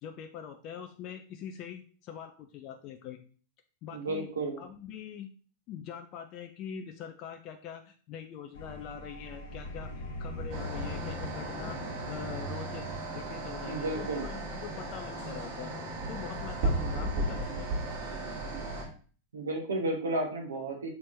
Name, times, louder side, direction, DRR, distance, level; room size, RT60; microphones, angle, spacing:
voice 1, 0.0-3.2 3.8-4.3 4.6-5.3 5.7-9.9 10.2-11.8 12.1-12.9 13.1-15.7 16.1-17.7, left 8 dB, 40° left, 5 dB, 0.6 m, -43 dB
voice 2, 3.9-4.6 13.7-14.3 19.3-20.9, right 2 dB, 70° right, 1 dB, 1.6 m, -32 dB
sound 1, 8.5-18.9, left 1 dB, 60° left, 1.6 m, -43 dB
sound 2, 10.5-18.8, right 2 dB, 50° right, 2.2 m, -35 dB
6.9 x 4.3 x 3.3 m, 0.40 s
figure-of-eight pair, 90°, 0 cm